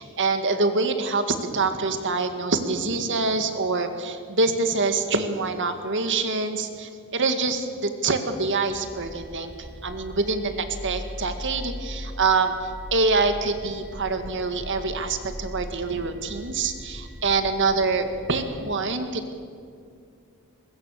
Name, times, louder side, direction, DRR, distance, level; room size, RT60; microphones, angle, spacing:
voice 1, 0.0-19.3, right 3 dB, 55° right, 7 dB, 2.0 m, -25 dB
sound 1, 8.6-18.7, equal, 5° right, 2.3 m, -39 dB
23.0 x 21.0 x 6.7 m, 2.3 s
head